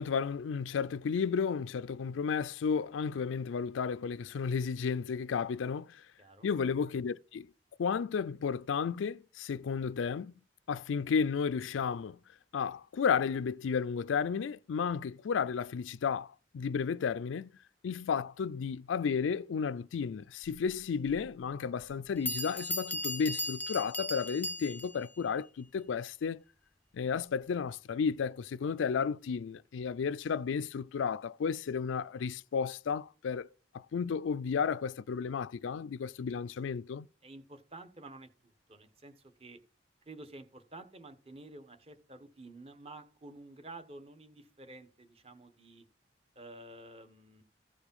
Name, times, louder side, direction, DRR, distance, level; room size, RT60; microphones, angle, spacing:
voice 1, 0.0-6.0 6.4-7.5 7.8-10.3 10.7-12.2 12.5-17.5 17.8-26.4 26.9-33.5 33.7-37.1, left 6 dB, 90° left, 0.4 m, -33 dB
Bell, 21.1-21.2 21.9-22.0 22.3-25.1, left 1 dB, 10° left, 0.6 m, -37 dB
voice 2, 37.2-39.6 40.1-45.8 46.3-47.4, right 2 dB, 30° right, 1.0 m, -51 dB
15.0 x 5.0 x 5.4 m
head